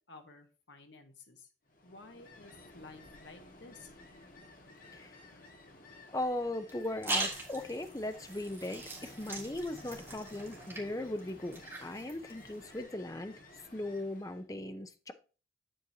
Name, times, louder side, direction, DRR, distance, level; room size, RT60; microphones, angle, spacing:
voice 1, 0.1-1.5 1.8-3.9, left 3 dB, 70° left, 1.2 m, -53 dB
Ocean, 1.7-14.4, left 2 dB, 45° left, 1.4 m, -55 dB
voice 2, 6.1-13.3 13.7-15.1, left 1 dB, 15° left, 0.6 m, -38 dB
sound 1, 6.7-12.8, right 2 dB, 10° right, 1.5 m, -41 dB
7.9 x 7.6 x 2.7 m
head